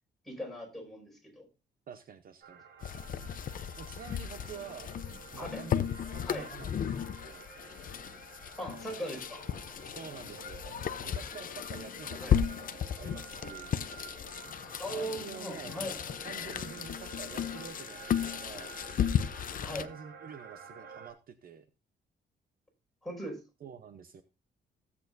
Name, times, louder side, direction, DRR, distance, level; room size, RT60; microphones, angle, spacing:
voice 1, 0.2-1.5 5.4-5.6 6.2-6.5 8.6-9.4 12.2-12.3 13.4-13.5 14.8-16.0 19.6-19.9 23.0-23.4, equal, ahead, -1 dB, 5.1 m, -39 dB
voice 2, 1.9-2.6 3.8-5.0 5.3-7.4 8.6-9.0 9.9-13.7 14.9-15.8 16.2-18.7 19.6-21.6 23.6-24.2, right 7 dB, 50° right, 10 dB, 0.8 m, -48 dB
sound 1, 2.4-21.1, right 5 dB, 70° right, 3.5 m, -51 dB
sound 2, 2.8-19.9, left 8 dB, 45° left, 0.6 m, -35 dB
16.0 x 8.3 x 2.6 m, 0.28 s
cardioid pair, 135°, 19 cm